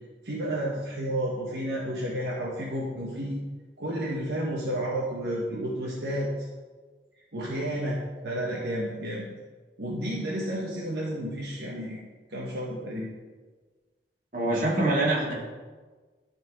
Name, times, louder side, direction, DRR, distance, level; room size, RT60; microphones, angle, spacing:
voice 1, 0.2-3.4 3.8-6.5 7.3-9.3 9.8-12.0 12.3-13.1, equal, 70° right, -5 dB, 1.2 m, -31 dB
voice 2, 14.3-15.3, right 2 dB, 50° right, -5 dB, 2.2 m, -24 dB
12.5 x 4.4 x 3.7 m, 1.4 s
head